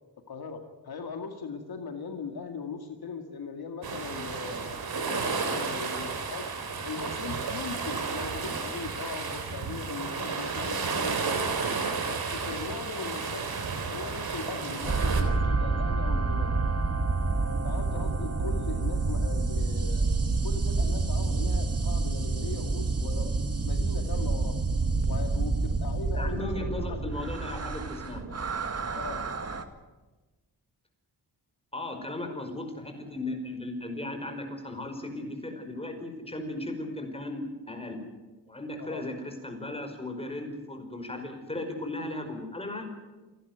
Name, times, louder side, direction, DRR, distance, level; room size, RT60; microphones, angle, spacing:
voice 1, 0.3-4.6 4.9-6.5 6.8-11.6 12.1-13.5 13.9-16.5 17.6-20.1 20.4-23.3 23.6-24.6 25.1-27.2 28.9-29.2 32.2-32.3 38.8-39.1, left 5 dB, 65° left, 5 dB, 2.2 m, -39 dB
sound 1, 3.8-15.2, right 5 dB, 65° right, 3.8 m, -32 dB
sound 2, 14.8-29.6, right 3 dB, 40° right, 1.8 m, -28 dB
voice 2, 26.2-28.2 31.7-38.0 38.5-42.9, left 1 dB, 15° left, 5 dB, 5.2 m, -36 dB
29.0 x 11.5 x 9.5 m, 1.2 s
wide cardioid pair, 105°, 39 cm